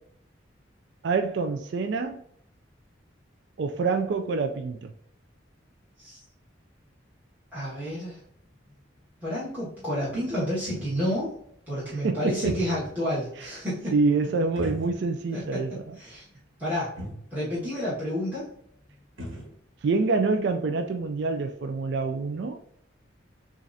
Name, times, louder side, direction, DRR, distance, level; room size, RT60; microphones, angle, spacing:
voice 1, 1.0-2.2 3.6-4.9 12.0-12.5 13.9-16.0 19.8-22.6, right 4 dB, 60° right, 0.3 m, -26 dB
voice 2, 7.5-8.2 9.2-11.3 11.7-14.0 15.3-16.2 16.6-16.9 17.3-18.5, equal, 10° right, 1.5 m, -30 dB
sound 1, 8.2-8.3 8.7-8.8 9.4-9.5 9.8-11.2 12.2-13.1 13.4-13.5 14.5-15.4 15.7-15.8 16.6-16.7 17.0-17.3 18.6-18.7 18.9-19.5, equal, 85° right, 1.3 m, -39 dB
7.1 x 2.5 x 2.7 m
head